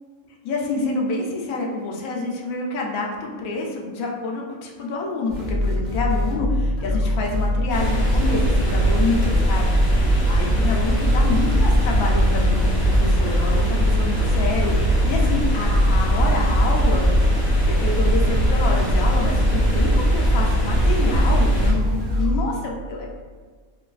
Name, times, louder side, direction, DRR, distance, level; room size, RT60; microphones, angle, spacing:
voice 1, 0.4-17.1 17.6-23.1, left 3 dB, 80° left, 0 dB, 1.0 m, -27 dB
sound 1, 5.3-22.4, left 1 dB, 40° right, 0.9 m, -23 dB
sound 2, 7.7-21.7, right 1 dB, 20° left, 0.7 m, -21 dB
3.8 x 2.5 x 2.3 m, 1.5 s
omnidirectional pair, 1.5 m